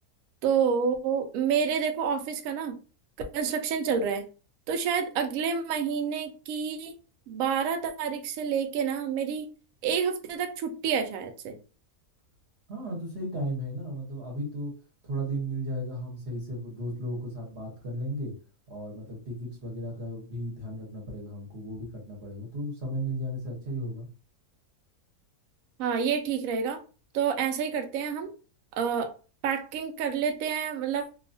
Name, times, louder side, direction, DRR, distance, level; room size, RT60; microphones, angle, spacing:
voice 1, 0.4-2.8 3.3-4.3 4.7-6.9 7.3-9.5 9.8-11.5 25.8-26.8 27.1-28.3 28.8-29.1 29.4-31.1, right 7 dB, 70° right, 5 dB, 0.9 m, -28 dB
voice 2, 12.7-14.7 15.0-18.3 18.7-24.1, right 1 dB, 50° right, -2 dB, 1.1 m, -35 dB
2.7 x 2.3 x 2.6 m, 0.35 s
omnidirectional pair, 1.7 m